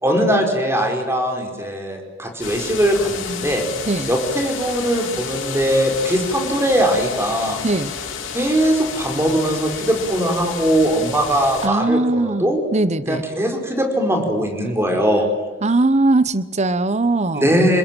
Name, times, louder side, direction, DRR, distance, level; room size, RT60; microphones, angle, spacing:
voice 1, 0.0-3.6 4.1-7.6 8.3-12.6 13.1-15.3 17.3-17.8, equal, 15° right, 4 dB, 5.1 m, -20 dB
sound 1, 2.4-11.7, left 6 dB, 80° left, 5.2 m, -31 dB
voice 2, 7.6-8.0 11.6-13.3 15.6-17.5, right 2 dB, 35° right, 15 dB, 0.9 m, -20 dB
28.0 x 21.5 x 9.1 m, 1.2 s
head